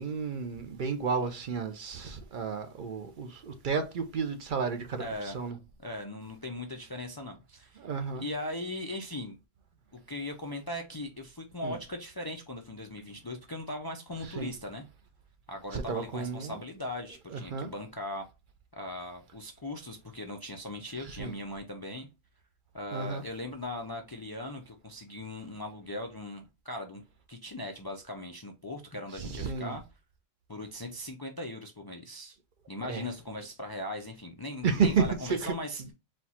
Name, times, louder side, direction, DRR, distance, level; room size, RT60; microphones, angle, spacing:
voice 1, 0.0-5.6 7.8-8.2 11.6-11.8 14.2-14.5 15.7-16.6 17.3-17.7 21.0-21.3 22.9-23.2 29.2-29.7 32.9-33.1 34.6-35.5, right 5 dB, 55° right, 0.7 m, -32 dB
voice 2, 5.0-5.4 5.8-7.8 8.2-9.4 9.9-14.9 15.5-18.2 18.7-22.1 22.7-27.0 27.3-29.8 30.5-32.4 32.7-35.9, left 1 dB, 30° left, 0.4 m, -39 dB
4.3 x 2.4 x 4.1 m
omnidirectional pair, 1.1 m